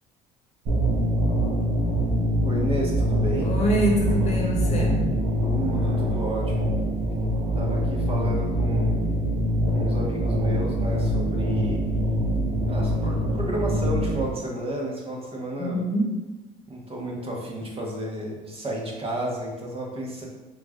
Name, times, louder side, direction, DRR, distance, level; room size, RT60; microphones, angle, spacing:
sound 1, 0.7-14.2, equal, 70° right, 1.3 m, -24 dB
voice 1, 2.4-3.5 5.4-6.7 7.6-9.1 9.6-11.8 12.7-15.8 16.7-20.3, right 1 dB, 35° right, -2 dB, 1.2 m, -32 dB
voice 2, 3.4-5.2 15.6-16.1, equal, 40° left, 0 dB, 1.0 m, -25 dB
3.5 x 3.2 x 3.6 m, 1.1 s
supercardioid pair, 75°, 17 cm